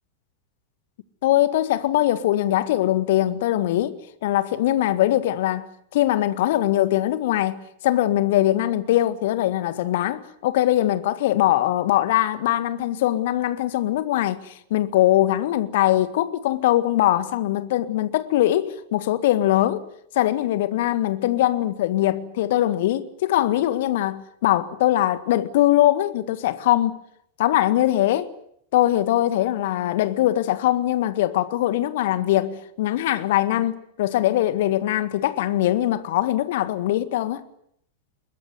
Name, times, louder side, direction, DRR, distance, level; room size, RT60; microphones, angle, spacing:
voice 1, 1.2-3.9 4.2-19.8 20.1-27.0 27.4-28.3 28.7-37.4, left 14 dB, 55° left, 1.7 m, -22 dB
22.5 x 21.5 x 9.5 m
figure-of-eight pair, 90°, 0 cm